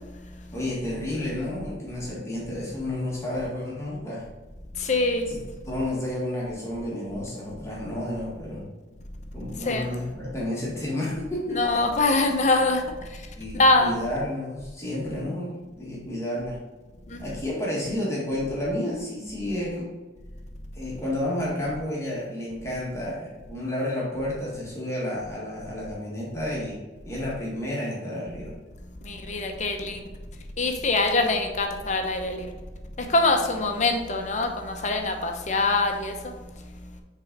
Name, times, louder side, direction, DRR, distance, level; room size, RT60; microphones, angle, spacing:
voice 1, 0.5-4.3 5.3-5.4 5.6-8.7 9.3-11.9 13.3-16.6 17.2-19.9 20.7-26.8 27.0-28.5, left 1 dB, 15° left, -5 dB, 1.8 m, -31 dB
voice 2, 4.8-5.3 9.6-9.9 11.5-12.8 13.5-14.0 17.1-17.2 29.0-30.0 30.6-32.5 33.0-36.3, left 2 dB, 40° left, 4 dB, 0.8 m, -24 dB
6.3 x 3.8 x 5.3 m, 1.3 s
head